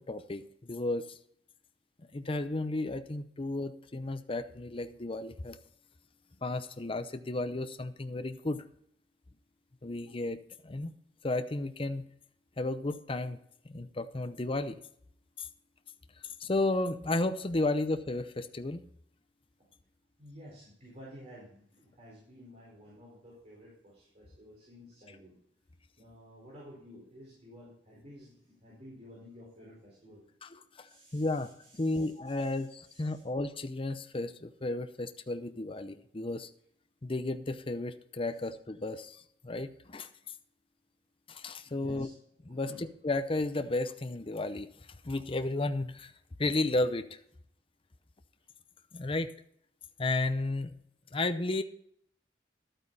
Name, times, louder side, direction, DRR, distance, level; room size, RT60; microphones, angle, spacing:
voice 1, 0.1-1.1 2.1-5.6 6.4-8.6 9.8-10.9 11.2-12.0 12.6-13.4 13.7-14.8 15.4-15.5 16.4-18.8 30.4-30.9 31.1-36.5 37.0-39.2 39.4-40.1 41.3-42.1 42.5-44.7 45.0-46.1 46.4-47.2 48.9-49.3 50.0-50.8 51.1-51.6, left 2 dB, 30° left, 8 dB, 0.7 m, -33 dB
voice 2, 20.2-25.3 26.0-30.2 30.8-32.6 32.8-33.2 41.6-42.1 42.6-42.8, equal, 40° right, -5 dB, 4.6 m, -53 dB
12.0 x 9.0 x 4.1 m, 0.66 s
head